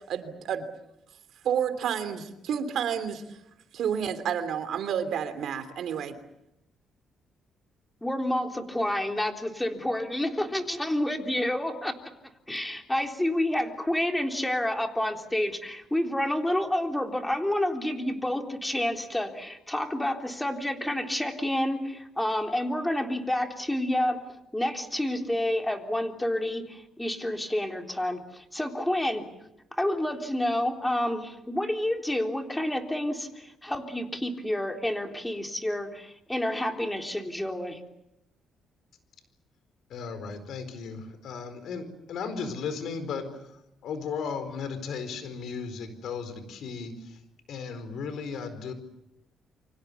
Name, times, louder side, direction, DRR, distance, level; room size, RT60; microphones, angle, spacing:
voice 1, 0.1-0.6 1.4-3.2 3.7-6.1, right 8 dB, 70° right, 10 dB, 3.1 m, -30 dB
voice 2, 8.0-12.0 12.5-24.2 24.5-29.3 29.7-37.8, left 1 dB, 10° left, 4 dB, 3.6 m, -29 dB
voice 3, 39.9-47.2 47.5-48.7, left 5 dB, 75° left, 10 dB, 4.6 m, -36 dB
29.0 x 25.0 x 7.0 m, 0.85 s
cardioid pair, 90°, 0 cm